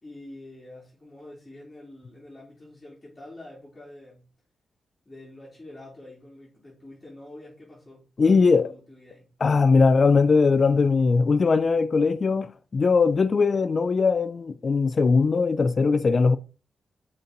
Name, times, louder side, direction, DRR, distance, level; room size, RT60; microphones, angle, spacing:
voice 1, 0.0-4.2 5.0-9.3, left 1 dB, 20° left, 3.4 m, -46 dB
voice 2, 8.2-8.7 9.4-16.4, left 4 dB, 50° left, 0.5 m, -20 dB
6.8 x 4.3 x 3.9 m
cardioid pair, 60°, 0 cm